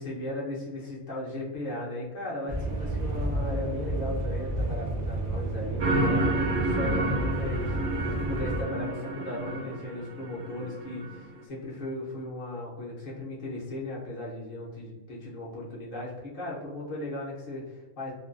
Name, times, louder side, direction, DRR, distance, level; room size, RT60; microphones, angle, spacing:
voice 1, 0.0-7.9 8.3-18.1, left 1 dB, 55° left, -5 dB, 0.7 m, -36 dB
sound 1, 2.5-8.6, right 2 dB, 85° right, 0.3 m, -31 dB
sound 2, 5.8-11.3, right 1 dB, 70° right, 0.8 m, -30 dB
2.5 x 2.3 x 2.4 m, 1.2 s
omnidirectional pair, 1.3 m